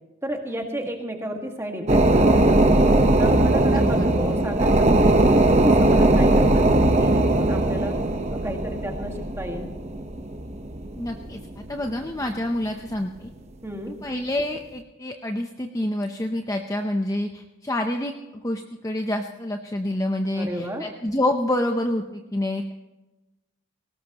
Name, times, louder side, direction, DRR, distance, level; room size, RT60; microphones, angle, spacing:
voice 1, 0.2-2.6 3.2-7.9 8.3-9.7 13.6-14.0 20.3-20.8, right 1 dB, 10° right, 2 dB, 1.8 m, -32 dB
sound 1, 1.9-11.9 12.3-12.4, right 1 dB, 30° right, 1.0 m, -19 dB
voice 2, 3.4-4.4 11.0-13.3 14.0-18.2 18.4-22.7, left 1 dB, 15° left, 4 dB, 0.7 m, -28 dB
19.5 x 18.0 x 3.0 m, 1.1 s
head